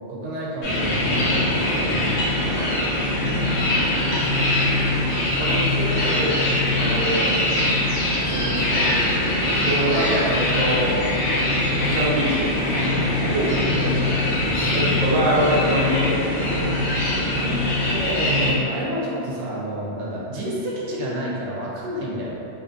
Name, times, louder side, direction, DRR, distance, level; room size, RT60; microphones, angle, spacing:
voice 1, 0.1-4.4 8.2-9.0 13.2-15.0 17.3-17.5 17.9-22.4, right 1 dB, 85° right, -5 dB, 0.9 m, -30 dB
sound 1, 0.6-18.5, left 1 dB, 80° left, 0.9 m, -22 dB
voice 2, 5.0-6.4 6.7-7.6 9.6-10.9 11.8-12.9 13.3-13.7 14.7-17.0, right 1 dB, 55° right, -5 dB, 0.6 m, -25 dB
2.6 x 2.5 x 2.4 m, 2.7 s
omnidirectional pair, 1.1 m